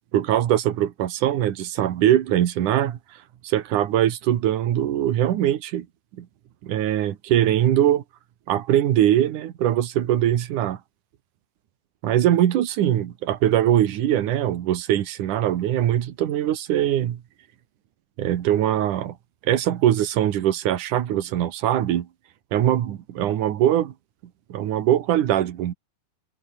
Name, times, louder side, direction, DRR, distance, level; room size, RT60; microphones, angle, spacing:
voice 1, 0.1-3.0 3.4-5.9 6.2-6.3 6.6-8.0 8.5-10.8 12.0-17.2 18.2-19.2 19.4-22.1 22.5-23.9 24.5-25.7, right 11 dB, 75° right, 3.0 m, -22 dB
omnidirectional pair, 3.6 m